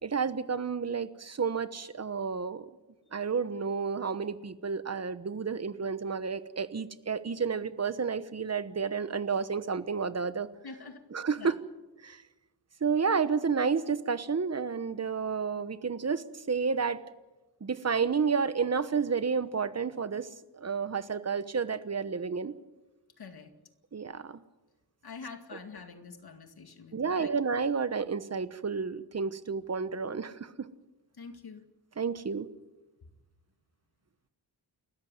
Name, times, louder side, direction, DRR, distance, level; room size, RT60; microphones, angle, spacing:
voice 1, 0.0-2.7 3.1-10.5 11.1-11.6 12.0-12.2 12.8-17.0 17.6-20.3 20.6-22.5 23.9-24.4 26.9-30.7 32.0-32.5, right 5 dB, 40° right, 13 dB, 1.1 m, -31 dB
voice 2, 10.6-11.0 11.4-11.5 23.2-23.5 25.0-27.3 31.2-31.6, left 4 dB, 65° left, 7 dB, 2.3 m, -46 dB
29.5 x 14.0 x 7.8 m, 1.1 s
wide cardioid pair, 125°, 40 cm